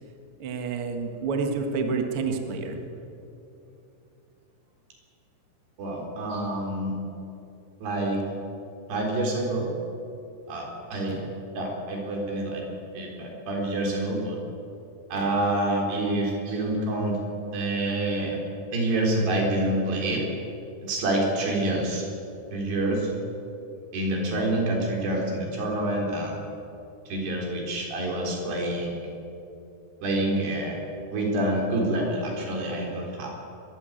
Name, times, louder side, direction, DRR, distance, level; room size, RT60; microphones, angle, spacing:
voice 1, 0.4-2.8, right 4 dB, 45° right, 4 dB, 1.9 m, -28 dB
voice 2, 5.8-7.0 7.8-8.2 8.9-9.7 10.5-11.2 11.6-12.6 12.9-14.4 15.1-17.2 17.5-18.4 18.7-20.2 20.8-22.0 22.5-23.1 23.9-26.3 27.1-29.0 30.0-30.8 31.1-33.3, right 1 dB, 80° right, 0 dB, 6.1 m, -27 dB
22.0 x 14.5 x 9.1 m, 2.8 s
omnidirectional pair, 4.7 m